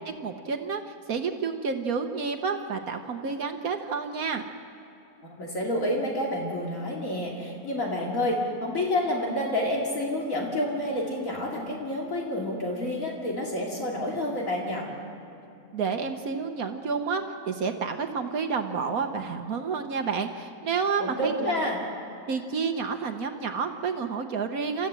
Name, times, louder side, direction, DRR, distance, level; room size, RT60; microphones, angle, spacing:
voice 1, 0.0-4.4 15.7-21.5 22.3-24.9, right 5 dB, 65° right, 6 dB, 1.4 m, -30 dB
voice 2, 5.2-14.9 21.0-21.8, left 1 dB, 60° left, -2 dB, 2.8 m, -29 dB
28.0 x 14.5 x 7.6 m, 2.9 s
omnidirectional pair, 1.6 m